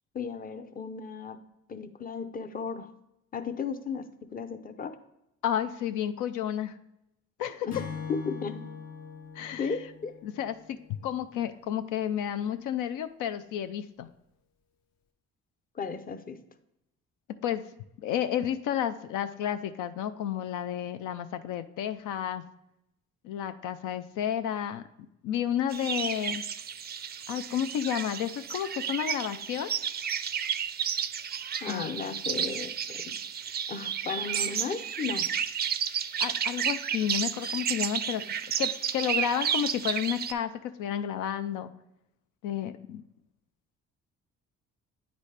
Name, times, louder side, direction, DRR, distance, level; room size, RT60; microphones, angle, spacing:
voice 1, 0.1-1.4 1.7-2.9 3.3-4.0 4.3-4.9 7.7-7.8 8.1-8.6 9.6-10.1 15.7-16.4 31.6-33.0 33.7-35.3, left 5 dB, 30° left, 9 dB, 0.6 m, -35 dB
voice 2, 5.4-6.8 7.4-7.7 9.4-9.8 10.2-14.1 17.4-17.6 18.0-22.4 23.2-24.8 25.2-26.4 27.3-29.7 31.7-31.9 36.2-38.2 38.6-41.7 42.4-43.0, left 10 dB, 80° left, 10 dB, 0.5 m, -31 dB
Acoustic guitar / Strum, 7.7-11.1, left 6 dB, 60° left, 0.9 m, -42 dB
sound 1, 25.7-40.3, right 8 dB, 35° right, 0.4 m, -32 dB
9.0 x 4.1 x 3.3 m, 0.85 s
cardioid pair, 90°, 30 cm